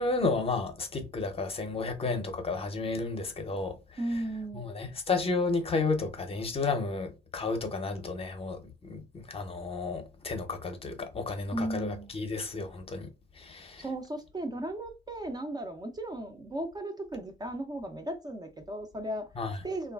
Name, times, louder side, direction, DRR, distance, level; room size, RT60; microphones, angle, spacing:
voice 1, 0.0-3.8 4.5-13.1 13.4-13.9 19.4-19.6, left 3 dB, 30° left, 0.6 m, -32 dB
voice 2, 4.0-4.7 11.5-12.1 13.8-19.3 19.6-19.9, right 1 dB, 20° right, 0.4 m, -36 dB
2.9 x 2.3 x 2.2 m
cardioid pair, 90°, 20 cm